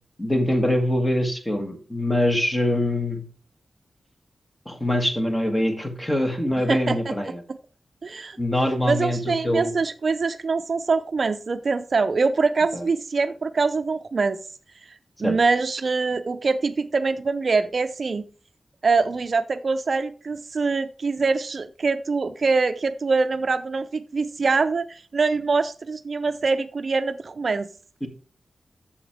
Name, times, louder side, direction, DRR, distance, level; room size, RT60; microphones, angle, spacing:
voice 1, 0.2-3.2 4.6-7.4 8.4-9.7 12.7-12.8 15.2-15.4 28.0-28.1, left 1 dB, 15° left, 5 dB, 1.6 m, -24 dB
voice 2, 8.0-8.4 8.8-14.4 15.2-18.2 18.8-27.7, right 4 dB, 50° right, 10 dB, 0.5 m, -24 dB
8.3 x 7.0 x 3.5 m, 0.37 s
wide cardioid pair, 110°, 0 cm